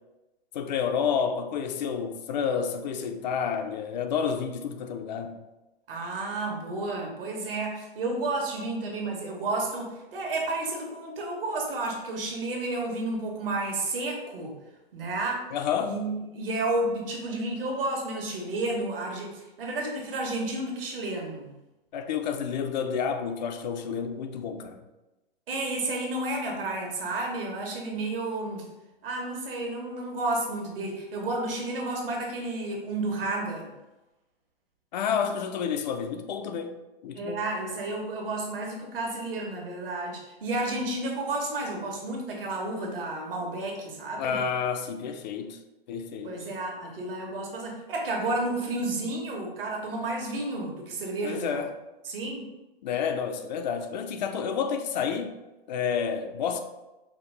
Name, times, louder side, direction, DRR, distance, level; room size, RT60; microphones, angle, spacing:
voice 1, 0.5-5.4 15.5-16.0 21.9-24.8 34.9-37.4 44.2-45.6 45.9-46.4 51.2-51.7 52.8-55.3 55.7-56.6, left 7 dB, 45° left, 0.5 m, -30 dB
voice 2, 5.9-14.5 14.9-15.5 15.8-21.5 25.5-28.7 29.0-33.7 37.1-44.4 46.2-51.7 52.0-52.5, right 2 dB, 65° right, 1.3 m, -31 dB
5.0 x 2.3 x 3.3 m
hypercardioid pair, 120°, 30 cm